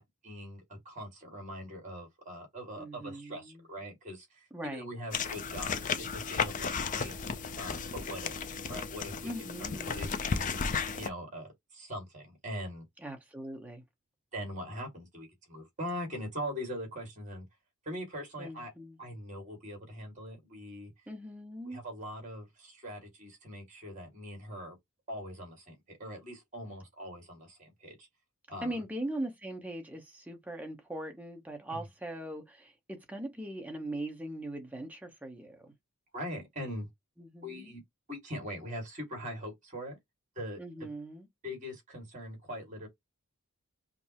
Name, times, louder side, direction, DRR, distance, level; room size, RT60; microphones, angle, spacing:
voice 1, 0.0-7.2 7.6-8.3 8.7-9.3 9.6-10.6 11.0-12.8 14.3-17.4 17.9-18.7 19.0-20.9 21.7-24.8 25.1-28.1 28.5-28.8 31.7-31.8 36.1-36.9 37.4-37.8 38.1-40.0 40.4-40.9 41.4-42.9, equal, 35° right, 1.9 m, -42 dB
voice 2, 2.8-3.6 4.5-4.9 9.2-10.1 13.0-13.8 18.4-19.0 21.1-21.8 28.6-35.7 37.2-37.7 40.6-41.3, right 1 dB, 5° right, 0.9 m, -40 dB
sound 1, 5.1-11.1, left 5 dB, 35° left, 0.4 m, -34 dB
5.1 x 2.0 x 2.9 m
head